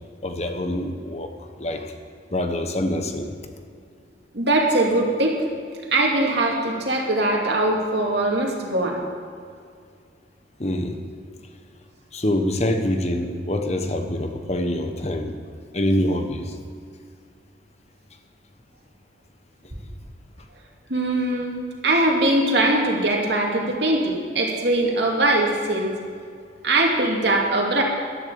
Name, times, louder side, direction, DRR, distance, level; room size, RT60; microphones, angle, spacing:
voice 1, 0.2-1.3 1.6-1.9 2.3-3.3 10.6-11.0 12.1-15.4 15.7-16.5, left 1 dB, 35° left, 6 dB, 1.2 m, -25 dB
voice 2, 4.3-5.4 5.9-9.0 20.9-21.5 21.8-25.9 26.6-27.8, right 2 dB, 70° right, -1 dB, 2.5 m, -21 dB
12.5 x 11.0 x 7.0 m, 2.3 s
head